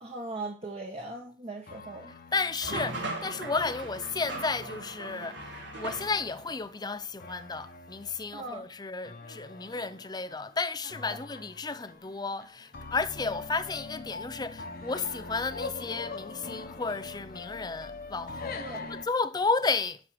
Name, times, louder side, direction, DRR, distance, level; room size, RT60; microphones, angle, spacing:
voice 1, 0.0-2.1 8.3-8.7 11.0-11.2 18.6-18.9, right 2 dB, 35° right, 1.4 m, -39 dB
sound 1, 1.7-19.1, left 3 dB, 50° left, 1.1 m, -43 dB
voice 2, 2.3-5.4 5.7-20.0, left 4 dB, 20° left, 0.6 m, -33 dB
sound 2, 2.6-6.5, right 1 dB, 75° right, 3.5 m, -38 dB
11.5 x 4.5 x 6.4 m
head